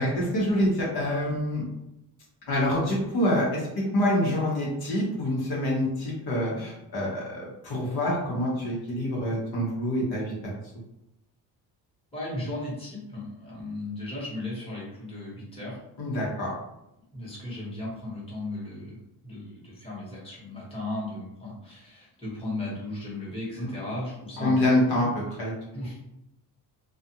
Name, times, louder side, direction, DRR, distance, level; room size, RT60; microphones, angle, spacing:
voice 1, 0.0-1.6 2.5-10.3 16.0-16.5 23.6-23.7 24.4-25.1 25.4-25.5, left 1 dB, 65° left, -4 dB, 1.1 m, -26 dB
voice 2, 12.1-15.8 17.1-24.6 24.9-25.1 25.7-26.0, left 2 dB, 15° left, -6 dB, 1.1 m, -36 dB
2.4 x 2.4 x 2.8 m, 0.87 s
cardioid pair, 135°, 40 cm